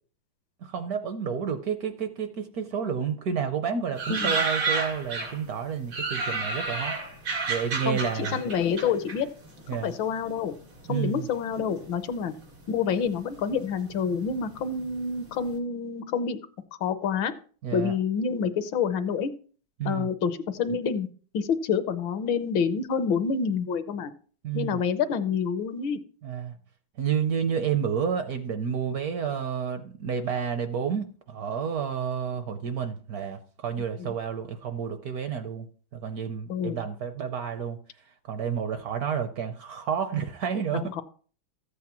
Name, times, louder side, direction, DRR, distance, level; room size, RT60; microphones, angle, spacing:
voice 1, 0.6-7.0 7.5-8.4 9.7-9.9 10.9-11.3 17.6-17.9 19.8-20.1 24.4-24.8 26.2-26.5 27.0-35.7 35.9-37.8 38.3-40.9, right 7 dB, 65° right, 8 dB, 1.0 m, -30 dB
sound 1, 4.0-5.5 5.9-9.8 10.1-10.9 11.6-12.1 12.4-12.5 12.7-15.0 15.3-15.4, right 4 dB, 85° right, 3.6 m, -31 dB
voice 2, 7.8-9.3 9.7-10.6 10.9-12.3 12.7-16.4 16.8-17.3 17.7-19.3 19.8-21.1 21.3-24.1 24.5-26.0 34.0-34.1 36.5-36.8 40.7-41.0, left 6 dB, 75° left, 10 dB, 1.5 m, -28 dB
13.5 x 8.3 x 2.9 m, 0.41 s
omnidirectional pair, 2.2 m